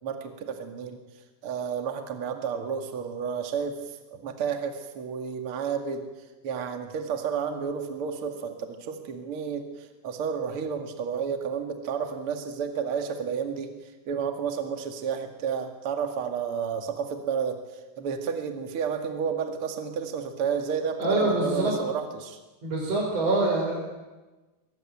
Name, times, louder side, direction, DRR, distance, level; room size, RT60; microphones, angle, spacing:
voice 1, 0.0-1.0 1.4-6.0 6.4-13.7 14.0-17.6 18.0-22.4, right 7 dB, 50° right, 5 dB, 1.7 m, -31 dB
voice 2, 21.0-21.8 22.6-23.8, right 2 dB, 30° right, -3 dB, 5.8 m, -25 dB
23.5 x 20.0 x 8.7 m, 1.2 s
omnidirectional pair, 5.6 m